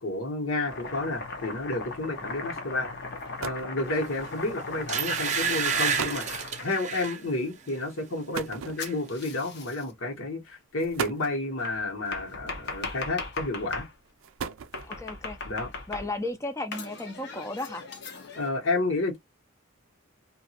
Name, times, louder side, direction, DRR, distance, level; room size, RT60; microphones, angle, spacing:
voice 1, 0.0-2.9 3.4-13.9 15.4-15.7 18.3-19.2, left 2 dB, 75° left, 1.3 m, -31 dB
Domestic sounds home sounds, 0.7-7.1 8.8-9.9 11.6-13.9 14.7-16.3 16.7-18.5, left 3 dB, 55° left, 0.8 m, -38 dB
sound 1, 2.8-2.9 3.2-3.8 4.8-5.0 5.6-5.7 6.0-6.3 8.3-9.2 10.1-10.3 10.8-11.5 12.7-13.2 14.0-15.1, right 7 dB, 75° right, 0.4 m, -36 dB
sound 2, 4.2-4.4 4.9-7.2 7.7-7.9 8.2-8.9 9.2-9.3, right 6 dB, 35° right, 0.6 m, -29 dB
voice 2, 14.9-15.4 15.9-17.9, left 2 dB, 15° left, 0.5 m, -34 dB
3.0 x 2.5 x 2.8 m
head